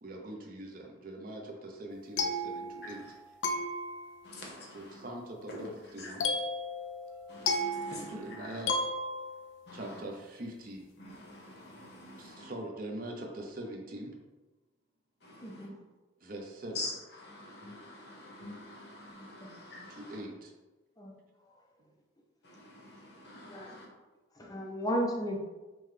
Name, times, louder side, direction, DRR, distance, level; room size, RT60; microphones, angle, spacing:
voice 1, 0.0-3.0 4.7-6.2 7.9-8.7 9.7-10.8 12.2-14.1 16.2-16.8 20.0-20.5, right 1 dB, 45° right, 0.6 m, -42 dB
sound 1, 1.9-3.1 3.4-4.3 6.2-9.6, left 2 dB, 70° left, 0.5 m, -34 dB
voice 2, 4.2-5.1 5.5-5.6 6.0-6.2 7.3-8.6 9.7-10.0 11.0-12.5 15.2-15.7 16.7-20.2 22.4-23.9, left 2 dB, 55° left, 0.9 m, -46 dB
voice 3, 15.4-15.8 19.1-19.5 21.0-21.1 23.4-23.8 24.3-25.4, equal, 20° left, 0.5 m, -35 dB
5.4 x 2.2 x 3.2 m
head